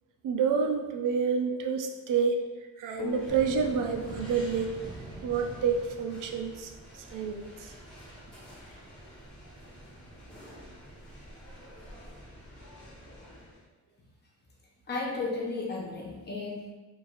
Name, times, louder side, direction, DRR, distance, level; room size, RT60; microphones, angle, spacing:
voice 1, 0.2-2.4 2.8-4.7 5.2-7.7, right 6 dB, 75° right, 4 dB, 0.5 m, -29 dB
sound 1, 2.9-13.6, equal, 5° left, 1.3 m, -49 dB
sound 2, 3.0-6.7, left 6 dB, 85° left, 0.6 m, -45 dB
sound 3, 3.3-7.2, right 1 dB, 15° right, 0.4 m, -45 dB
voice 2, 14.9-16.7, left 3 dB, 30° left, -3 dB, 0.8 m, -34 dB
4.6 x 3.2 x 2.5 m, 1.3 s
wide cardioid pair, 180°, 32 cm